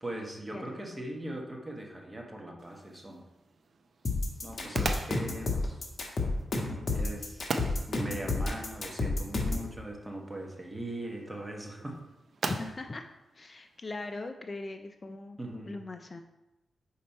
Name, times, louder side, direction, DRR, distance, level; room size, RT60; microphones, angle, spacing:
voice 1, 0.0-3.2 4.4-5.9 6.9-7.5 7.9-12.0 15.4-15.7, right 1 dB, 15° right, 0 dB, 1.0 m, -40 dB
sound 1, 2.6-14.3, right 4 dB, 60° right, 0.4 m, -42 dB
sound 2, 4.0-9.7, left 3 dB, 55° left, 1.1 m, -30 dB
voice 2, 4.6-5.2 12.4-13.0 13.3-15.4 15.7-16.2, left 2 dB, 35° left, 6 dB, 0.3 m, -40 dB
5.5 x 4.1 x 4.3 m, 0.99 s
wide cardioid pair, 105°, 0 cm